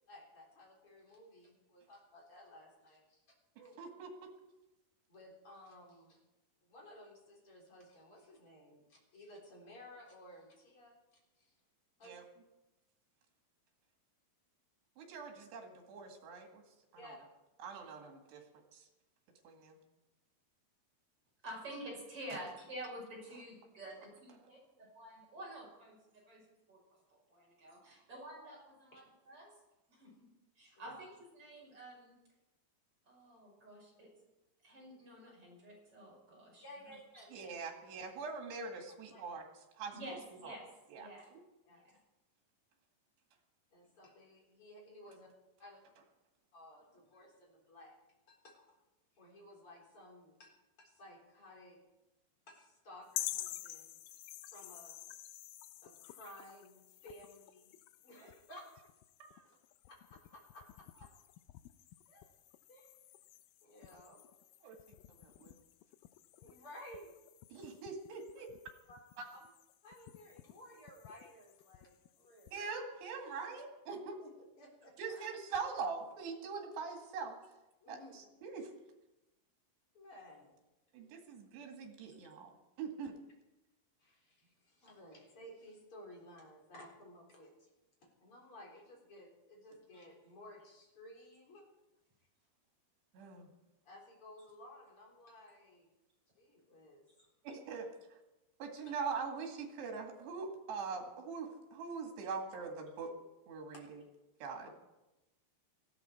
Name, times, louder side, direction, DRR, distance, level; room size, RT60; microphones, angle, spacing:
voice 1, 0.1-3.2 5.1-6.2 6.6-11.0 11.4-11.5 12.0-12.2 17.0-17.2 28.9-29.0 30.7-30.9 36.6-37.5 39.1-39.2 41.6-41.9 43.7-45.3 45.6-45.8 46.5-48.0 48.3-48.8 49.1-51.8 52.5-54.2 54.5-55.0 55.8-57.7 58.0-58.6 60.1-61.1 62.1-62.3 62.7-62.9 63.6-64.3 66.4-67.1 68.9-69.0 69.3-69.5 69.8-72.5 74.2-75.3 77.8-78.3 79.9-80.6 84.0-87.7 88.2-91.7 93.8-95.9 96.4-97.1 98.9-99.0, left 1 dB, 35° left, -2 dB, 4.4 m, -56 dB
voice 2, 3.6-4.1 12.0-12.2 15.0-16.6 16.9-17.1 17.6-18.4 18.7-18.9 19.4-19.8 22.3-22.4 37.3-39.4 39.8-40.2 40.4-40.6 40.9-41.1 59.3-59.4 64.6-64.8 65.1-65.6 67.5-68.5 72.5-74.2 75.0-77.4 77.9-78.7 80.9-82.5 82.8-83.2 93.1-93.5 97.4-97.9 98.6-103.1 103.5-104.0 104.4-104.7, right 5 dB, 85° right, 3 dB, 4.4 m, -43 dB
voice 3, 21.4-26.4 26.7-26.8 27.1-29.5 29.9-30.2 30.6-32.1 33.1-34.1 34.6-37.2 39.9-40.6 40.9-41.3 41.7-42.0, right 1 dB, 35° right, -3 dB, 6.6 m, -49 dB
sound 1, 53.1-72.7, left 15 dB, 85° left, 2.0 m, -50 dB
19.0 x 14.5 x 4.5 m, 1.0 s
omnidirectional pair, 4.8 m